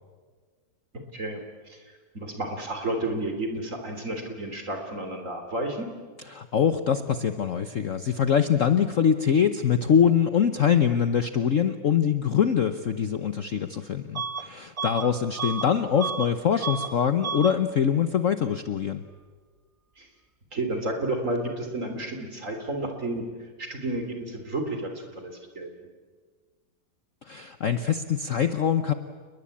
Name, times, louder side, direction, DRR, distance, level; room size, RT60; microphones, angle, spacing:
voice 1, 2.1-5.9 20.0-20.1 20.5-25.7, right 1 dB, 40° right, 5 dB, 3.8 m, -31 dB
voice 2, 6.3-19.0 27.2-28.9, left 8 dB, 50° left, 10 dB, 1.0 m, -23 dB
Bus / Alarm, 14.2-14.5 14.8-16.3 16.6-16.9 17.2-17.6, right 5 dB, 70° right, 0.3 m, -32 dB
29.5 x 21.0 x 8.6 m, 1.5 s
omnidirectional pair, 2.1 m